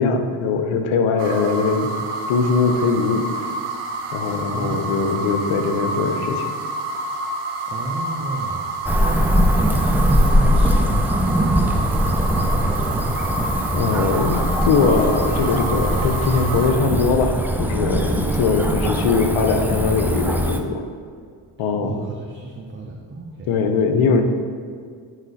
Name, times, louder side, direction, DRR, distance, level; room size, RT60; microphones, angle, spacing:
voice 1, 0.0-1.9 2.3-3.2 4.1-6.5 13.7-20.8 21.6-22.0 23.5-24.2, left 4 dB, 70° left, 5 dB, 0.8 m, -21 dB
sound 1, 1.2-16.7, right 2 dB, 75° right, 1.0 m, -28 dB
voice 2, 4.5-5.0 7.7-8.6 9.0-13.2 21.8-23.5, right 3 dB, 25° right, -2 dB, 0.8 m, -31 dB
Cricket / Motor vehicle (road), 8.9-20.6, equal, 5° right, 0.5 m, -21 dB
9.0 x 3.2 x 4.1 m, 2.1 s
supercardioid pair, 55°, 50 cm